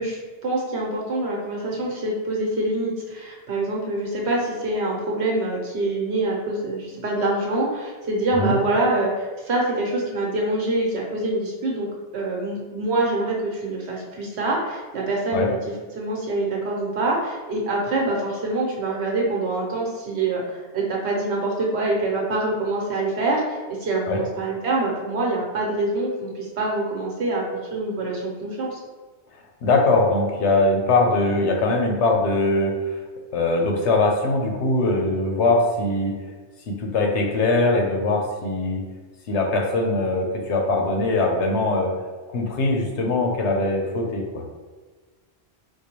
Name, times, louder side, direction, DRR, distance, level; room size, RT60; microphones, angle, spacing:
voice 1, 0.0-11.9 12.1-15.6 15.9-27.4 27.7-28.8, right 2 dB, 75° right, -2 dB, 1.1 m, -25 dB
voice 2, 29.6-32.7 33.3-36.1 36.7-38.8 39.3-41.9 42.3-44.4, left 2 dB, 90° left, 1 dB, 1.0 m, -21 dB
4.6 x 2.2 x 2.9 m, 1.4 s
omnidirectional pair, 1.1 m